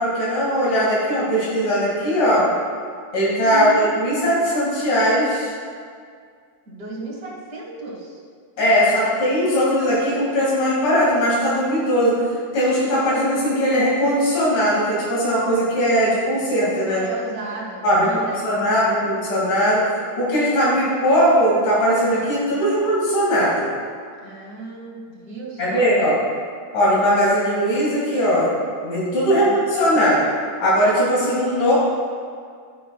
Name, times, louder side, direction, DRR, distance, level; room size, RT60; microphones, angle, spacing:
voice 1, 0.0-2.5 3.1-5.5 8.6-12.2 12.5-17.1 17.8-19.9 20.2-23.7 25.6-26.2 26.7-28.5 28.8-30.2 30.6-31.7, equal, 85° left, -7 dB, 3.8 m, -19 dB
voice 2, 3.4-3.8 6.7-8.2 8.6-9.0 16.9-18.9 20.7-20.8 24.2-26.1 29.3-29.6 29.9-30.2, right 3 dB, 35° right, -4 dB, 2.0 m, -35 dB
11.5 x 10.0 x 2.3 m, 2.1 s
omnidirectional pair, 3.5 m